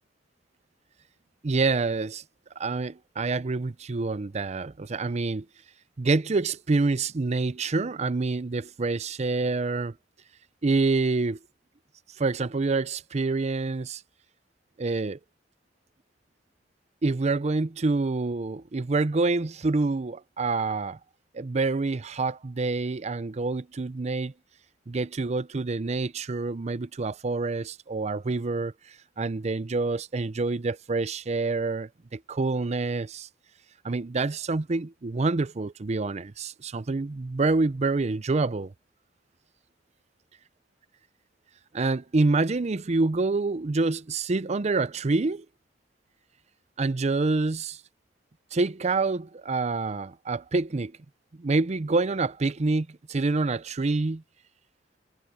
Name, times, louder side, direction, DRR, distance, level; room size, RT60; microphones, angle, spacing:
voice 1, 1.4-2.2 2.6-5.5 6.0-9.9 10.6-11.4 12.2-14.0 14.8-15.2 17.0-21.0 21.3-24.3 24.9-33.3 33.8-38.7 41.7-45.5 46.8-47.8 48.5-50.9 51.4-54.2, right 3 dB, 40° right, 0.5 m, -27 dB
head